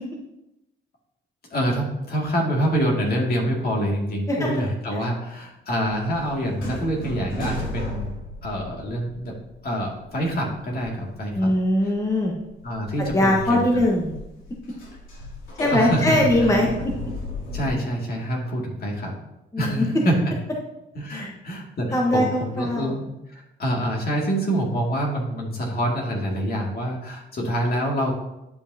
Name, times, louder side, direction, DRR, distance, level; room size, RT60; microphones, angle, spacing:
voice 1, 1.5-8.1 8.4-9.3 9.6-11.5 11.8-11.9 12.6-13.8 15.7-16.6 17.5-19.1 19.6-20.3 20.9-28.1, equal, 50° left, -1 dB, 2.4 m, -26 dB
sound 1, 5.9-9.6 10.0-11.0 11.3-11.4 11.9-17.7, equal, 85° left, 2.6 m, -34 dB
voice 2, 11.3-12.3 13.1-14.1 15.6-16.7 19.5-19.8 21.1-21.3 21.9-22.9, left 1 dB, 15° left, -2 dB, 1.2 m, -21 dB
10.5 x 5.5 x 2.8 m, 0.90 s
cardioid pair, 90°, 20 cm